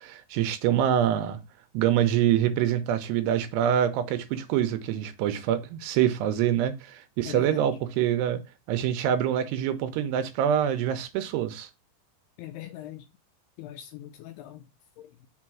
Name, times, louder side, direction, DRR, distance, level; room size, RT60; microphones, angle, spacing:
voice 1, 0.0-1.4 1.7-8.4 8.7-11.7, right 10 dB, 80° right, 2.7 m, -25 dB
voice 2, 7.2-7.8 12.4-13.1 13.6-14.6 15.0-15.1, left 13 dB, 80° left, 2.4 m, -41 dB
6.3 x 4.3 x 6.1 m
omnidirectional pair, 5.1 m